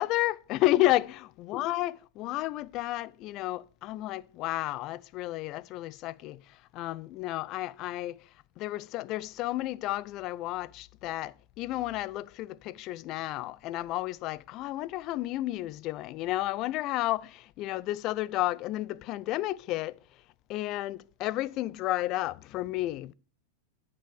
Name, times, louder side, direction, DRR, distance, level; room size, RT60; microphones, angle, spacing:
voice 1, 0.0-8.2 8.6-20.0 20.5-23.1, left 16 dB, 40° left, 0.3 m, -32 dB
8.4 x 5.7 x 4.7 m
figure-of-eight pair, 90°, 0 cm